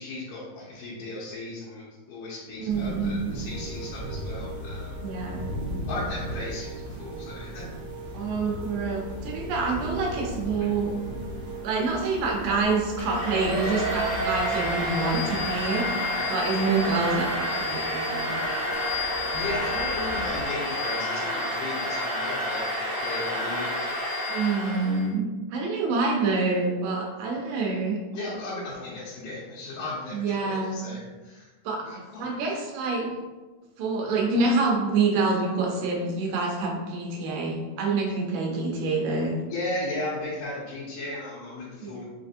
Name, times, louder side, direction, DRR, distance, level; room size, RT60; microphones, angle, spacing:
voice 1, 0.0-4.9 5.9-7.6 19.3-23.7 24.6-24.8 28.1-31.5 31.9-32.3 39.5-42.0, left 2 dB, 80° left, -9 dB, 2.4 m, -36 dB
voice 2, 2.6-3.4 5.0-5.9 8.1-10.9 11.6-18.4 24.3-25.3 25.5-28.0 30.1-31.0 31.6-31.8 32.2-33.1 33.8-39.4 41.8-42.0, right 3 dB, 85° right, -1 dB, 2.5 m, -27 dB
sound 1, 2.7-18.9, right 1 dB, 55° right, 1.7 m, -40 dB
sound 2, 3.5-20.5, equal, 40° right, 1.0 m, -39 dB
Domestic sounds home sounds, 13.0-25.1, left 1 dB, 60° left, 0.8 m, -29 dB
5.8 x 2.5 x 2.6 m, 1.2 s
omnidirectional pair, 3.9 m